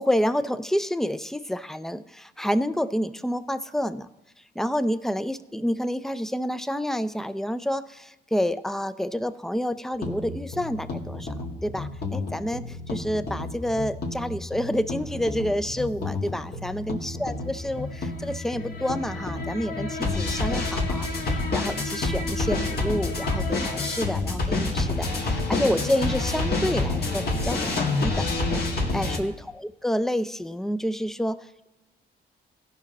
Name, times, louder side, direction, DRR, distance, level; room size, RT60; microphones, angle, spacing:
voice 1, 0.0-4.1 4.6-11.3 11.6-28.3 28.9-31.7, equal, ahead, 13 dB, 0.4 m, -29 dB
sound 1, 10.0-29.2, left 2 dB, 55° left, 2.0 m, -28 dB
16.5 x 5.7 x 3.9 m, 1.0 s
cardioid pair, 90°, 20 cm